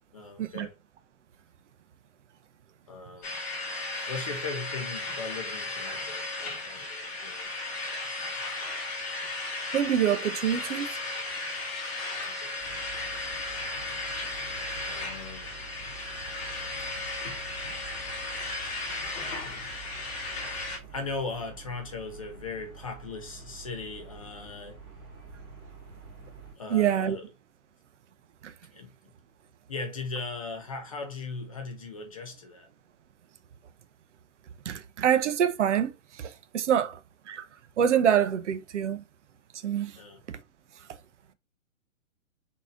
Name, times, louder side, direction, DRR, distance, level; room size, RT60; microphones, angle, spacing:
voice 1, 0.1-0.8 2.9-3.4 4.1-7.5 12.2-12.6 14.9-15.5 19.3-19.7 20.9-24.8 26.6-27.3 28.7-28.9 29.7-32.7 40.0-40.2, left 4 dB, 25° left, 0.5 m, -38 dB
sound 1, 3.2-20.8, left 3 dB, 50° left, 1.7 m, -35 dB
voice 2, 9.7-10.9 26.7-27.2 28.4-28.5 34.7-37.0 37.3-37.5 37.8-39.0 39.6-40.0, right 9 dB, 60° right, 0.7 m, -26 dB
sound 2, 12.6-26.5, right 5 dB, 15° right, 2.7 m, -47 dB
4.0 x 3.6 x 2.5 m
hypercardioid pair, 160°, 41 cm